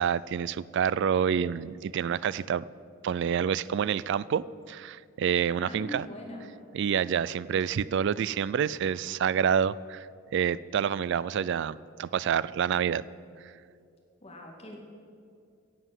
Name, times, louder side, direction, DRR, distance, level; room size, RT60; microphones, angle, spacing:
voice 1, 0.0-2.6 3.0-6.1 6.7-10.1 10.3-13.0, right 8 dB, 60° right, 19 dB, 0.3 m, -28 dB
voice 2, 5.6-6.5 14.2-14.8, equal, 30° left, 0 dB, 2.0 m, -41 dB
16.0 x 7.7 x 7.4 m, 2.4 s
head